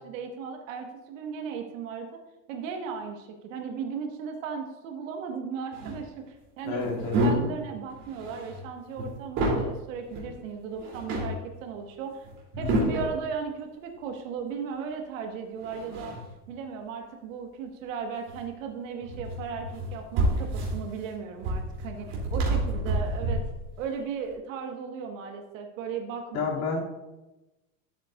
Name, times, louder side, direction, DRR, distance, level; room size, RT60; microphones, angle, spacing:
voice 1, 0.0-2.1 2.5-12.3 12.6-16.2 16.5-23.4 23.8-26.6, right 6 dB, 70° right, 4 dB, 1.6 m, -36 dB
sound 1, 5.7-6.0 6.8-7.6 7.9-9.7 10.1-10.3 10.7-11.4 12.2-13.2 15.6-16.5 18.3-18.5 19.0-23.7, right 1 dB, 40° right, 3.2 m, -29 dB
voice 2, 6.6-7.5 12.5-12.9 26.3-26.8, left 4 dB, 50° left, -3 dB, 2.8 m, -31 dB
13.0 x 7.6 x 2.5 m, 1.0 s
supercardioid pair, 150°, 40 cm